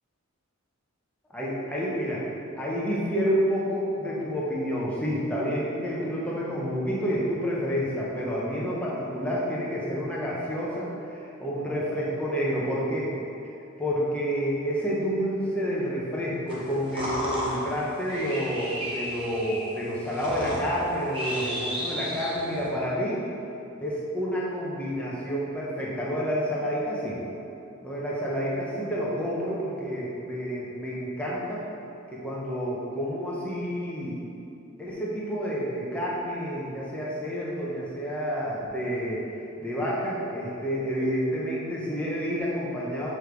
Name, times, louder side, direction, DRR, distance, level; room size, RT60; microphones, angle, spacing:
voice 1, 1.3-2.2 2.6-13.1 13.8-23.2 23.8-27.2 27.8-31.6 32.1-34.2 34.8-39.3 39.6-43.1, equal, 5° left, -6 dB, 0.9 m, -29 dB
sound 1, 16.5-22.7, equal, 25° right, 1.0 m, -34 dB
7.1 x 3.4 x 4.6 m, 2.7 s
head